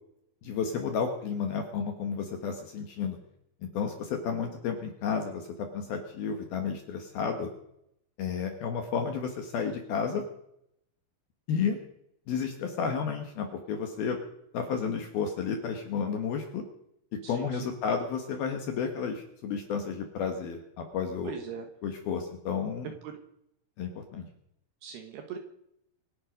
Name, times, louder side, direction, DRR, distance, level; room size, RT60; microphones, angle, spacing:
voice 1, 0.4-3.2 3.7-5.5 5.7-7.5 8.2-10.2 11.5-11.8 12.3-14.2 14.5-16.6 17.3-21.3 21.8-22.9 23.8-24.3, left 6 dB, 65° left, 4 dB, 2.7 m, -32 dB
voice 2, 17.2-17.6 21.2-21.7 23.0-23.1 24.8-25.4, right 7 dB, 70° right, 4 dB, 2.7 m, -40 dB
25.5 x 9.8 x 5.2 m, 0.76 s
omnidirectional pair, 5.9 m